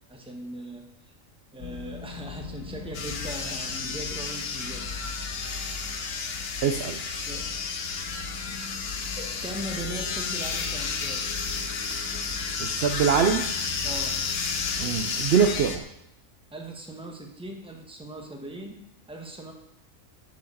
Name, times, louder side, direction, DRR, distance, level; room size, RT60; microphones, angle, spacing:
voice 1, 0.1-0.9 1.5-4.9 7.3-7.5 9.2-11.3 13.8-14.2 16.5-19.5, right 1 dB, 5° right, 1 dB, 0.9 m, -39 dB
sound 1, 1.6-15.8, left 4 dB, 75° left, 1.8 m, -40 dB
sound 2, 2.9-15.8, left 5 dB, 55° left, 0.9 m, -32 dB
voice 2, 6.6-7.0 12.6-13.5 14.8-15.9, right 7 dB, 60° right, 5 dB, 0.7 m, -23 dB
6.9 x 6.2 x 5.4 m, 0.79 s
omnidirectional pair, 1.5 m